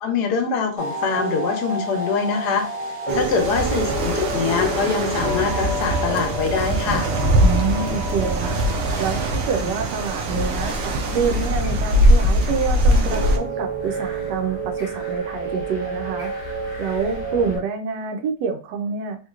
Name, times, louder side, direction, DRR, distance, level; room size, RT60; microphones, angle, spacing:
voice 1, 0.0-2.7 3.1-7.1, left 5 dB, 75° left, 5 dB, 1.2 m, -23 dB
sound 1, 0.8-9.9 13.1-17.6, right 1 dB, 35° right, 0.5 m, -29 dB
sound 2, 3.1-13.4, right 1 dB, 65° right, 0.8 m, -21 dB
voice 2, 7.4-19.2, right 6 dB, 80° right, 4 dB, 1.2 m, -27 dB
sound 3, 11.3-17.6, left 2 dB, 45° left, 0.7 m, -40 dB
3.0 x 2.9 x 2.4 m, 0.36 s
omnidirectional pair, 1.8 m